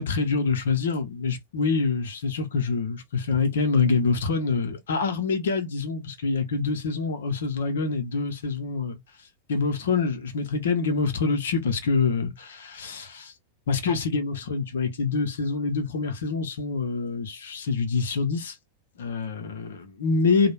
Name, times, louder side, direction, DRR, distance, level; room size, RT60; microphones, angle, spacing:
voice 1, 0.0-9.0 9.5-13.3 13.7-18.5 19.0-20.5, left 4 dB, 60° left, 0.6 m, -26 dB
2.2 x 2.0 x 3.1 m
figure-of-eight pair, 90°, 0 cm